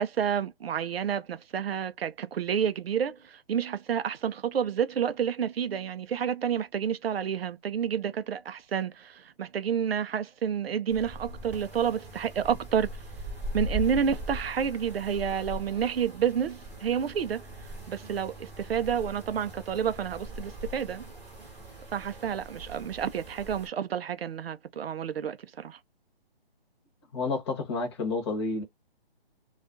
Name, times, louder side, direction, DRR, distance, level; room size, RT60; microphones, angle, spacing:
voice 1, 0.0-12.9 13.5-17.4 17.9-21.0 21.9-25.8, right 8 dB, 75° right, 0.5 m, -29 dB
sound 1, 10.9-23.7, equal, 5° right, 0.8 m, -40 dB
voice 2, 27.1-28.6, left 3 dB, 25° left, 0.9 m, -30 dB
2.4 x 2.2 x 2.5 m
figure-of-eight pair, 145°, 31 cm